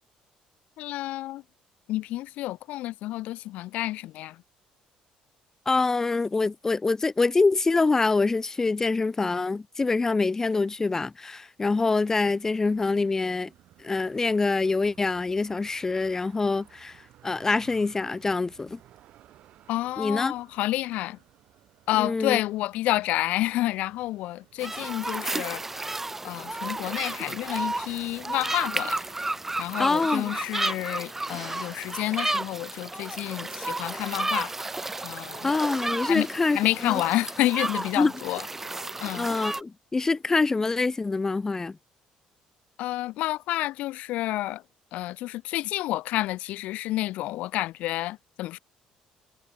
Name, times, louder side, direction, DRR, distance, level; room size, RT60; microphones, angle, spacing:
voice 1, 0.8-1.4 1.9-4.4 19.7-21.2 21.9-25.6 26.2-29.0 29.6-34.5 35.0-35.5 36.1-36.3 36.5-38.4 39.0-39.3 42.8-44.6 44.9-48.6, left 16 dB, 75° left, 1.4 m, -29 dB
voice 2, 5.7-13.5 13.8-18.8 20.0-20.3 22.0-22.4 29.8-30.3 35.4-37.0 38.0-38.1 39.2-41.8, left 3 dB, 20° left, 0.6 m, -25 dB
sound 1, 12.6-31.1, right 13 dB, 70° right, 6.8 m, -57 dB
sound 2, 24.6-39.6, right 2 dB, 15° right, 1.8 m, -32 dB
cardioid pair, 100°, 2 cm